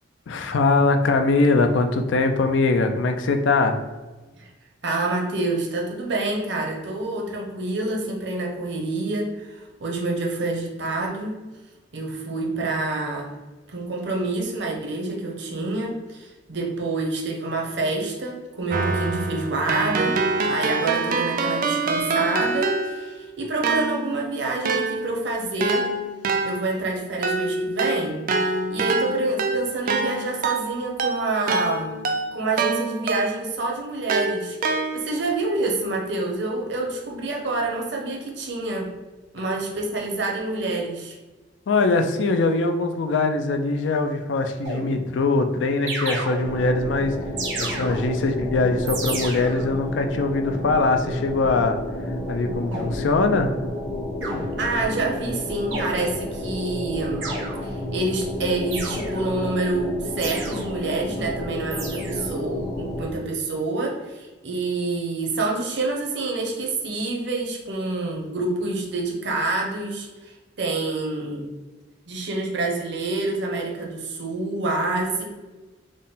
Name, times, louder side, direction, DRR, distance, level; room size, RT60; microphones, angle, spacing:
voice 1, 0.3-3.8 41.7-47.2 47.6-51.8 52.1-53.5, left 3 dB, 75° left, 6 dB, 0.4 m, -22 dB
voice 2, 4.8-11.4 11.9-13.3 13.7-25.9 26.4-31.9 32.3-34.6 34.9-39.0 39.3-41.2 54.6-57.3 57.6-71.5 72.1-75.2, right 2 dB, 65° right, -1 dB, 0.8 m, -27 dB
Keyboard (musical), 18.7-23.2 23.6-33.6 34.1-35.3, right 3 dB, 50° right, 0.4 m, -26 dB
sound 1, 44.6-45.3 45.9-46.8 47.4-48.3 48.9-49.8 52.7-53.2 54.2-54.9 55.7-56.4 57.2-58.0 58.7-59.4 60.2-60.9 61.7-62.4, right 2 dB, 90° right, 1.0 m, -33 dB
sound 2, 46.4-63.1, left 1 dB, 15° left, 0.6 m, -31 dB
3.7 x 2.1 x 3.9 m, 1.2 s
head